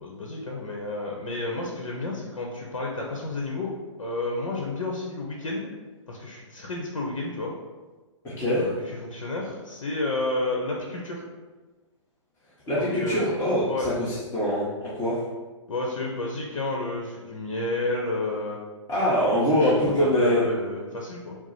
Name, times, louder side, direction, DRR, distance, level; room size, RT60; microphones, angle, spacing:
voice 1, 0.0-3.7 4.0-5.7 6.1-7.5 8.5-11.2 12.7-13.3 13.7-13.9 15.7-18.6 19.4-19.7 20.0-21.4, left 2 dB, 80° left, -1 dB, 0.8 m, -31 dB
voice 2, 8.2-8.7 12.7-15.2 18.9-20.5, equal, 15° left, -10 dB, 0.9 m, -24 dB
4.6 x 2.0 x 4.1 m, 1.3 s
hypercardioid pair, 135°, 16 cm